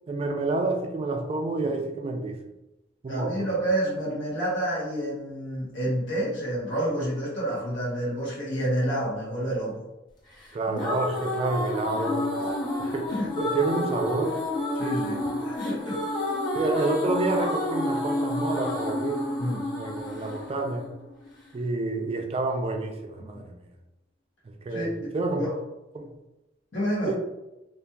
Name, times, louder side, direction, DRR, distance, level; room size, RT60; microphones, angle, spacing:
voice 1, 0.1-2.4 3.0-3.5 10.5-12.3 12.9-13.1 13.4-14.4 16.5-19.2 19.8-20.9 21.5-23.5 24.7-25.5 25.9-26.1 27.1-27.2, right 2 dB, 30° right, 3 dB, 0.3 m, -28 dB
voice 2, 3.1-9.8 12.4-13.3 14.7-16.0 19.4-19.7 23.2-23.4 24.7-25.5 26.7-27.1, right 1 dB, 90° left, -7 dB, 0.9 m, -29 dB
sound 1, 10.4-21.5, left 1 dB, 25° left, 0.6 m, -30 dB
2.7 x 2.4 x 2.2 m, 0.96 s
head